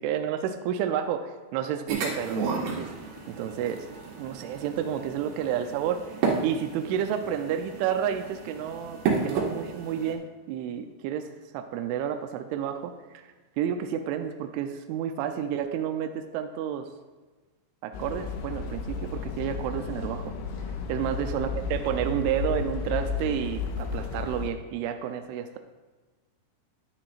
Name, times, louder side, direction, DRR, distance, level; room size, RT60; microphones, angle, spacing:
voice 1, 0.0-2.9 3.3-3.9 4.2-16.9 17.8-20.3 20.9-25.6, right 9 dB, 85° right, 6 dB, 2.7 m, -31 dB
sound 1, 1.9-10.1, right 5 dB, 65° right, 3.4 m, -32 dB
sound 2, 17.9-24.5, left 5 dB, 80° left, 3.6 m, -33 dB
13.0 x 10.5 x 2.5 m, 1.3 s
omnidirectional pair, 5.9 m